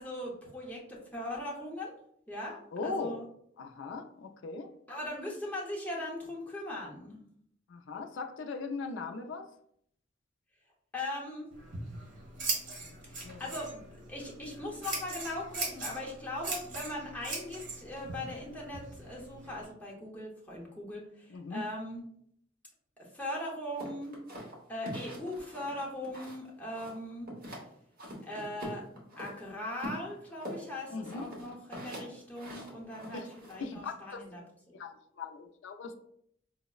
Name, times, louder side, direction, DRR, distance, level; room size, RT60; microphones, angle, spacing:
voice 1, 0.0-1.9 2.3-3.3 4.9-7.2 10.9-11.5 13.1-13.8 14.1-22.0 23.0-24.1 24.7-27.3 28.2-28.8 29.2-34.4 34.7-34.8, left 1 dB, 10° left, -3 dB, 0.8 m, -40 dB
voice 2, 2.7-3.2 3.6-4.7 7.7-9.5 13.2-13.4 21.3-21.6 30.9-31.2 33.1-33.3 33.6-34.5 34.7-36.0, left 4 dB, 80° left, 6 dB, 0.4 m, -39 dB
Scissors, 11.5-19.6, right 2 dB, 75° right, 1.4 m, -40 dB
sound 1, 23.8-26.5 26.7-27.7 28.0-29.3 29.8-33.6, equal, 50° right, 1.0 m, -43 dB
5.3 x 2.0 x 2.3 m, 0.68 s
head